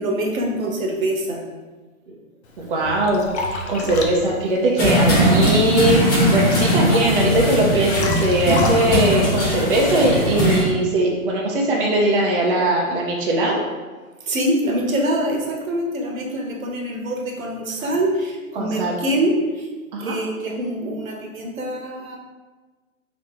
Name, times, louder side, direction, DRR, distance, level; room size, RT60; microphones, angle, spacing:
voice 1, 0.0-1.4 2.1-2.2 14.3-19.7 20.0-22.2, right 1 dB, 70° right, 1 dB, 1.0 m, -24 dB
Liquid, 2.4-10.2, left 2 dB, 50° left, 0.7 m, -32 dB
voice 2, 2.6-13.6 18.5-19.0 19.9-20.2, right 1 dB, 40° right, -2 dB, 0.6 m, -20 dB
sound 1, 4.8-10.6, equal, 30° left, 1.4 m, -19 dB
4.0 x 3.0 x 3.3 m, 1.3 s
figure-of-eight pair, 135°, 43 cm